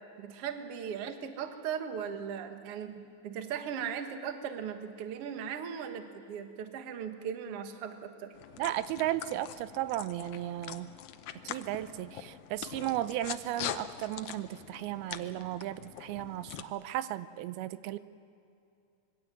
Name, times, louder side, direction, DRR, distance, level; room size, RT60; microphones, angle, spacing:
voice 1, 0.2-8.3, right 7 dB, 55° right, 6 dB, 1.7 m, -38 dB
sound 1, 8.3-16.6, left 11 dB, 85° left, 1.6 m, -43 dB
voice 2, 8.6-10.9 11.5-18.0, right 14 dB, 80° right, 14 dB, 2.5 m, -35 dB
26.0 x 22.0 x 7.6 m, 2.5 s
omnidirectional pair, 4.5 m